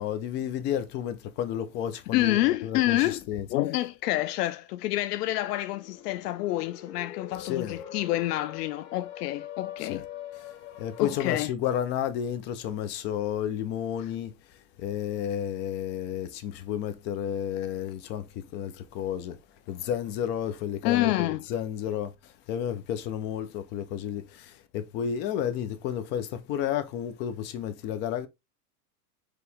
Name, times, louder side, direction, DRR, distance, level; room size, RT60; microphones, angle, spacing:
voice 1, 0.0-3.5 7.4-7.8 9.8-10.0 10.4-10.5 10.8-14.3 14.8-19.4 19.7-28.3, left 9 dB, 25° left, 0.4 m, -32 dB
voice 2, 2.1-3.2 3.5-10.0 11.0-11.5 20.8-21.4, left 15 dB, 80° left, 0.6 m, -28 dB
sound 1, 5.2-11.3, left 11 dB, 60° left, 1.3 m, -43 dB
4.9 x 3.0 x 3.3 m
supercardioid pair, 145°, 47 cm